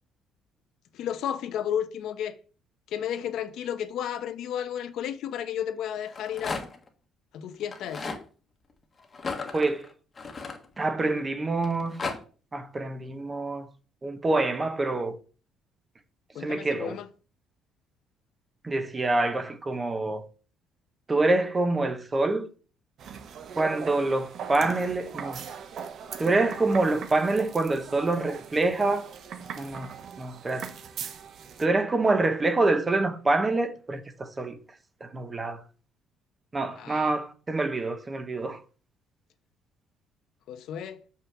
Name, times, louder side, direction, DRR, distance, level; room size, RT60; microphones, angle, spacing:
voice 1, 0.9-2.4 2.9-6.6 7.3-8.1 16.3-17.1 36.7-37.1 40.5-41.0, left 9 dB, 55° left, 0.9 m, -32 dB
Rattle, 6.0-6.9 7.6-8.2 9.1-11.1 11.6-12.2, left 4 dB, 20° left, 1.2 m, -35 dB
voice 2, 9.5-9.8 10.8-11.9 12.5-13.7 14.0-15.1 16.4-16.9 18.6-20.2 21.1-22.5 23.6-25.4 26.2-29.1 29.6-29.9 30.2-30.7 31.6-34.6 35.0-35.6 36.5-38.6, right 2 dB, 15° right, 0.8 m, -26 dB
sound 1, 23.0-31.7, right 7 dB, 40° right, 0.9 m, -40 dB
6.3 x 5.7 x 7.1 m
cardioid pair, 180°, 0 cm